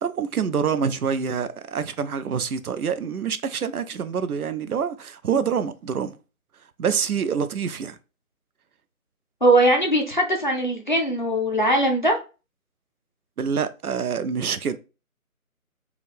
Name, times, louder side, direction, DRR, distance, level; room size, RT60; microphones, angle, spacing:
voice 1, 0.0-6.2 6.8-8.0 13.4-14.8, right 6 dB, 85° right, 0.5 m, -26 dB
voice 2, 9.4-12.2, right 1 dB, 35° left, 0.5 m, -20 dB
2.6 x 2.3 x 3.5 m
figure-of-eight pair, 155°, 43 cm